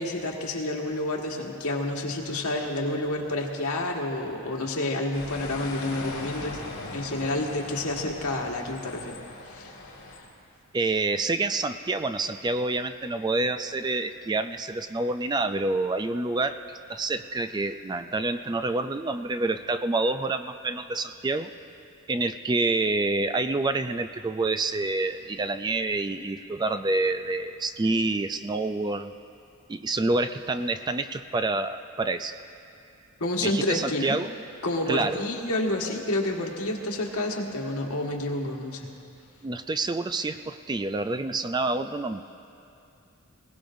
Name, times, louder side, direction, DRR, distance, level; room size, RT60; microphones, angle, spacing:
voice 1, 0.0-6.6 6.9-9.2 9.5-9.7 33.2-34.2 34.6-38.9, left 1 dB, 90° left, 0 dB, 1.6 m, -29 dB
sound 1, 5.1-10.2, left 2 dB, 60° left, 4.0 m, -39 dB
voice 2, 10.7-16.6 16.9-21.5 22.1-29.1 29.7-32.3 33.4-34.3 34.9-35.2 39.4-42.2, right 2 dB, 20° right, 10 dB, 0.3 m, -27 dB
21.0 x 18.0 x 2.6 m, 2.6 s
head